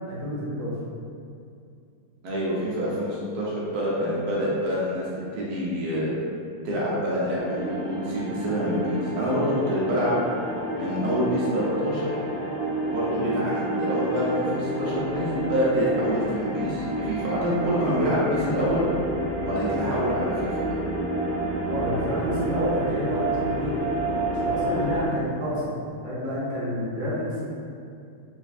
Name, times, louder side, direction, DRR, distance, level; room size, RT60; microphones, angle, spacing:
voice 1, 0.1-0.7 21.6-23.8 24.3-25.7 26.0-27.4, equal, 55° right, -9 dB, 1.4 m, -29 dB
voice 2, 2.2-5.0 5.4-6.1 6.6-10.2 10.8-12.1 12.8-18.9 19.4-20.7, equal, 85° right, -7 dB, 1.5 m, -26 dB
sound 1, 7.3-18.4, equal, 80° left, 1.6 m, -39 dB
sound 2, 7.4-25.1, right 2 dB, 55° left, 0.9 m, -30 dB
4.4 x 2.4 x 2.4 m, 2.5 s
omnidirectional pair, 2.3 m